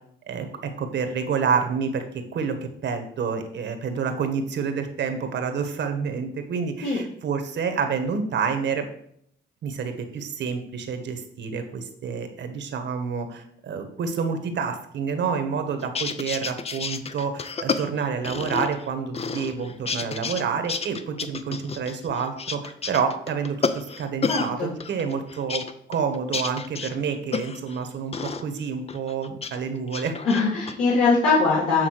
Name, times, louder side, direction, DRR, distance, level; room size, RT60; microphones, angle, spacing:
voice 1, 0.3-2.0 2.3-2.6 2.8-8.8 9.6-25.6 25.9-30.2, right 6 dB, 65° right, 6 dB, 1.3 m, -28 dB
sound 1, 15.8-18.9 19.1-20.4 20.7-24.5 24.8-27.8 28.1-28.4 28.9-29.6 29.9-30.7, left 5 dB, 30° left, 0.6 m, -30 dB
voice 2, 24.3-24.7 30.2-31.9, left 4 dB, 80° left, -9 dB, 2.4 m, -21 dB
7.8 x 3.6 x 6.5 m, 0.68 s
cardioid pair, 90°, 20 cm